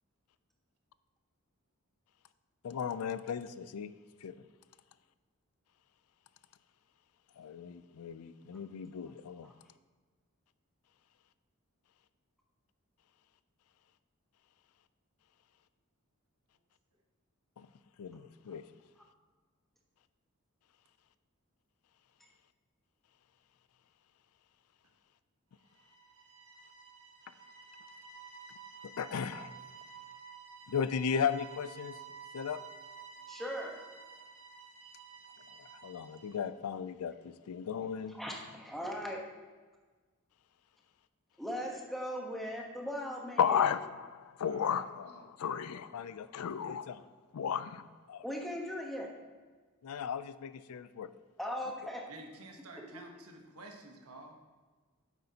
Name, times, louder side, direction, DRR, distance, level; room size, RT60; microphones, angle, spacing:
voice 1, 2.6-3.9 4.2-4.3 7.4-9.5 17.6-17.7 18.0-18.6 29.0-29.5 30.7-31.9 32.3-32.6 35.8-38.2 43.4-45.1 45.4-47.0 47.3-47.8 48.1-48.2 49.8-51.1, left 7 dB, 85° left, 14 dB, 0.4 m, -35 dB
sound 1, 25.7-36.5, right 6 dB, 70° right, 1.4 m, -51 dB
voice 2, 33.3-33.7 38.1-39.2 41.4-43.7 48.2-49.1 51.4-52.0 52.7-53.0, equal, ahead, -1 dB, 1.1 m, -39 dB
voice 3, 44.4-44.8 45.0-45.2 52.1-54.3, right 2 dB, 90° right, 3 dB, 1.1 m, -51 dB
9.2 x 7.7 x 2.8 m, 1.4 s
head